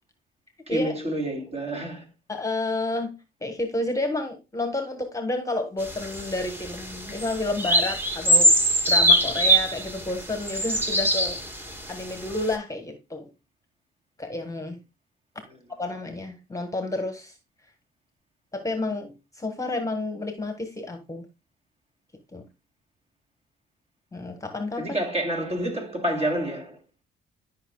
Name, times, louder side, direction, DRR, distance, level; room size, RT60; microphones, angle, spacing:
voice 1, 0.7-2.1 24.8-26.8, right 1 dB, 30° right, 3.2 m, -28 dB
voice 2, 2.3-3.1 3.4-8.5 8.9-11.6 11.9-13.3 14.2-14.8 15.8-17.3 18.5-21.3 22.3-22.5 24.1-24.8, left 2 dB, 15° left, 1.4 m, -30 dB
sound 1, 5.8-11.8 12.3-12.5, equal, 10° right, 1.9 m, -22 dB
12.0 x 5.7 x 2.3 m
cardioid pair, 90°, 20 cm